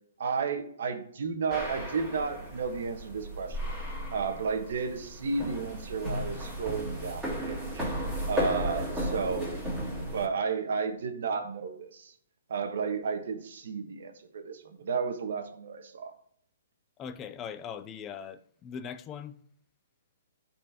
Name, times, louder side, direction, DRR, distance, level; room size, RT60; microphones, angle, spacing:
voice 1, 0.2-3.7 4.1-7.8 8.3-9.5 10.1-12.1 12.5-16.1, right 5 dB, 65° right, 1.3 m, -32 dB
sound 1, 1.5-10.3, equal, 10° right, 3.0 m, -35 dB
voice 2, 17.0-19.4, left 7 dB, 20° left, 0.4 m, -40 dB
12.0 x 4.4 x 2.8 m
hypercardioid pair, 150°, 0 cm